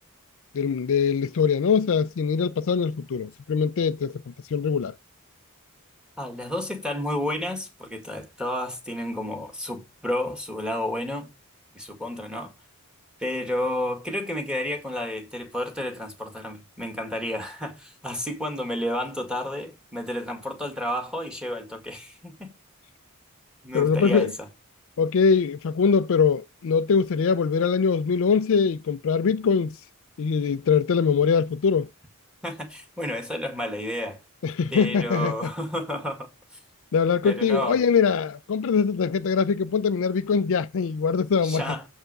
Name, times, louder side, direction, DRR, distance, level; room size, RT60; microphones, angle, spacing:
voice 1, 0.5-4.9 23.7-24.3 25.0-29.7 30.2-31.9 34.4-35.3 36.9-41.7, left 6 dB, 60° left, 0.4 m, -22 dB
voice 2, 6.2-11.3 11.7-12.5 13.2-22.5 23.6-24.5 32.4-34.2 34.7-36.3 37.2-37.8 41.4-41.9, left 1 dB, 5° right, 1.8 m, -31 dB
7.2 x 4.5 x 6.5 m
head